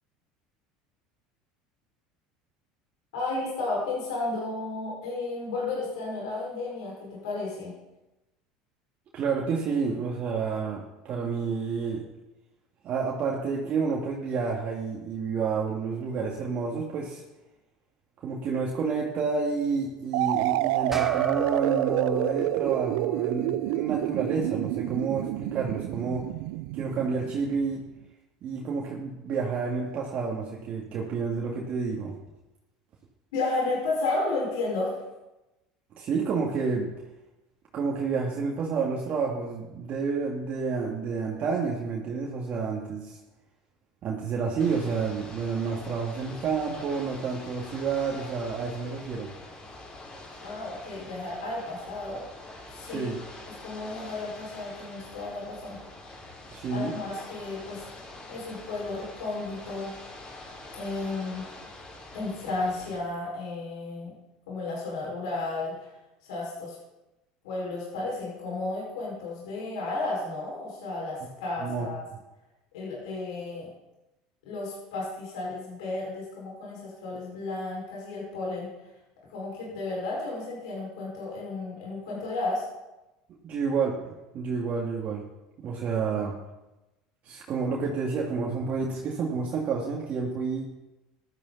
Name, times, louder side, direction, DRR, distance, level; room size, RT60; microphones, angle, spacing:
voice 1, 3.1-7.7 33.3-34.9 50.4-52.2 52.7-53.1 53.5-55.8 56.7-57.8 58.3-59.9 60.7-61.4 62.1-64.1 64.5-65.9 66.2-66.8 67.4-72.0 72.7-73.7 74.4-78.7 79.3-82.6, left 2 dB, 80° left, -4 dB, 5.3 m, -33 dB
voice 2, 9.1-12.0 12.8-17.2 18.2-26.3 26.7-27.8 28.4-32.2 36.0-36.9 37.7-43.2 44.0-49.3 52.8-53.2 56.5-57.0 71.6-71.9 83.4-85.2 85.6-86.4 87.2-90.7, right 5 dB, 50° right, -3 dB, 2.2 m, -29 dB
sound 1, 20.1-27.8, right 17 dB, 75° right, 0.4 m, -28 dB
sound 2, 20.9-25.7, left 1 dB, 10° right, 1.2 m, -42 dB
Ocean / Boat Water vehicle, 44.6-63.0, left 2 dB, 30° left, 5.1 m, -45 dB
14.5 x 12.5 x 4.1 m, 1.0 s
supercardioid pair, 95°, 3 cm